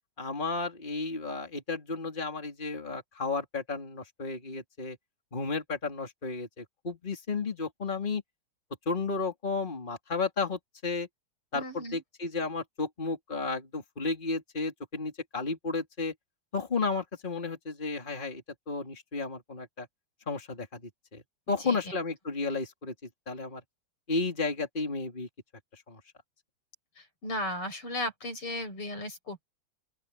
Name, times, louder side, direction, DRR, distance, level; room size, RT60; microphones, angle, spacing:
voice 1, 0.2-5.0 5.3-8.2 8.9-11.1 11.5-16.1 16.5-19.9 20.3-20.8 21.1-21.2 21.5-22.9 23.3-23.6 24.1-25.3 25.7-26.0, left 4 dB, 20° left, 3.0 m, -33 dB
voice 2, 11.5-12.0 21.5-21.8 27.0-29.4, left 1 dB, 80° left, 8.8 m, -36 dB
open air
omnidirectional pair, 2.4 m